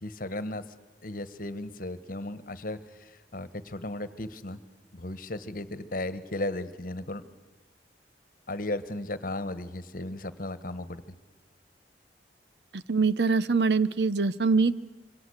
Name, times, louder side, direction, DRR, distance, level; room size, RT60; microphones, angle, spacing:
voice 1, 0.0-0.6 1.0-4.6 4.9-7.2 8.5-11.0, left 1 dB, 50° left, 14 dB, 1.4 m, -35 dB
voice 2, 12.7-14.7, right 4 dB, 70° right, 15 dB, 0.9 m, -24 dB
26.5 x 24.5 x 8.2 m, 1.1 s
head